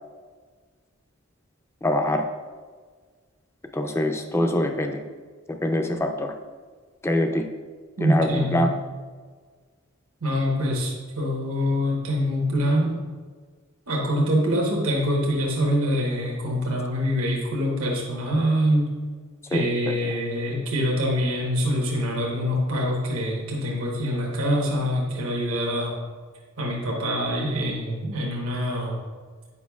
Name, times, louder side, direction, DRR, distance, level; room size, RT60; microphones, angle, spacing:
voice 1, 1.8-2.3 3.7-5.0 5.6-6.3 7.0-7.4 8.0-8.7 19.5-19.7 20.0-20.1, left 1 dB, 10° left, 5 dB, 0.4 m, -24 dB
voice 2, 8.0-8.7 10.2-13.0 13.9-18.9 19.5-25.9 26.6-29.0, equal, 85° right, -3 dB, 1.1 m, -25 dB
8.4 x 5.3 x 2.3 m, 1.5 s
head